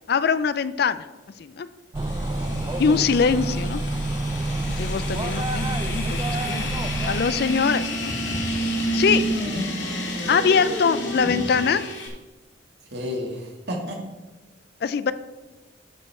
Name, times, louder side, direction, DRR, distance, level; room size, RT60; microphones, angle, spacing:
voice 1, 0.1-1.0 1.4-1.7 2.8-3.8 4.8-8.1 8.9-9.2 10.3-11.8 14.8-15.1, left 5 dB, 55° left, 14 dB, 0.4 m, -23 dB
sound 1, 1.9-7.8, right 2 dB, 20° right, 0.4 m, -28 dB
sound 2, 2.0-12.1, equal, 80° left, 2.0 m, -30 dB
voice 2, 2.2-2.6 4.4-4.7 9.5-9.7 12.9-14.0, left 1 dB, 60° right, 0 dB, 1.9 m, -33 dB
12.5 x 5.2 x 4.3 m, 1.2 s
head